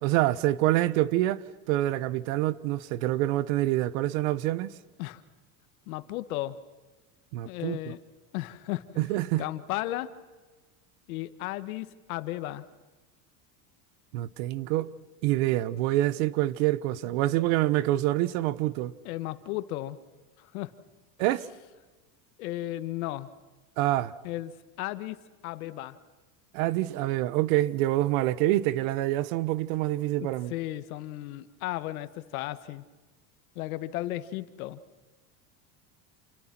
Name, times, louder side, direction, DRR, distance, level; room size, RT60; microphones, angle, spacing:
voice 1, 0.0-4.7 7.3-7.8 9.0-9.4 14.1-14.9 15.2-18.9 21.2-21.5 23.8-24.1 26.5-30.5, right 15 dB, 70° right, 1.3 m, -26 dB
voice 2, 5.9-6.6 7.4-8.0 8.3-9.0 9.4-10.1 11.1-12.6 19.0-20.0 20.4-20.7 22.4-23.3 24.2-24.5 24.8-26.0 30.5-32.8 33.5-34.8, left 16 dB, 85° left, 1.6 m, -34 dB
29.0 x 28.5 x 6.1 m
supercardioid pair, 135°, 42 cm